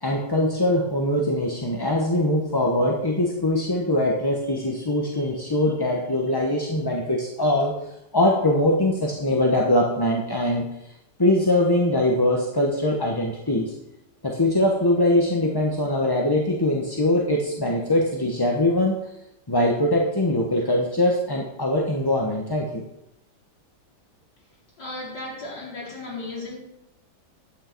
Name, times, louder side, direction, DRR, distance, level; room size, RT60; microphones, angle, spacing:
voice 1, 0.0-7.7 8.1-10.7 11.2-13.7 14.2-19.0 19.5-22.8, left 1 dB, 15° left, -1 dB, 1.0 m, -22 dB
voice 2, 24.8-26.6, left 2 dB, 75° left, -7 dB, 5.3 m, -35 dB
11.5 x 9.4 x 4.6 m, 0.85 s
omnidirectional pair, 1.9 m